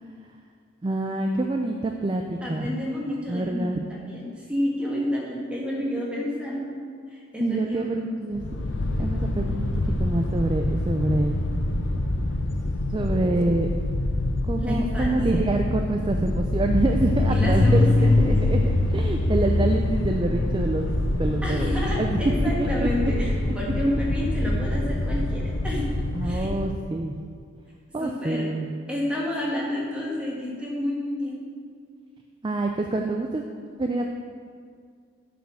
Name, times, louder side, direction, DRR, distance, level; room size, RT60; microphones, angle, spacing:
voice 1, 0.8-2.7 3.3-3.8 7.4-8.4 9.0-11.4 12.9-13.7 14.4-23.5 26.1-27.2 27.9-28.7 32.4-33.4 33.8-34.0, right 2 dB, 25° right, 3 dB, 0.3 m, -26 dB
voice 2, 2.4-6.7 7.1-8.1 14.6-15.5 17.3-18.3 21.4-23.3 23.5-25.9 26.2-26.5 28.0-28.5 28.9-31.4, left 1 dB, 5° right, -5 dB, 1.5 m, -30 dB
sound 1, 8.3-26.7, left 2 dB, 65° left, 0.6 m, -25 dB
7.9 x 5.1 x 6.4 m, 2.1 s
head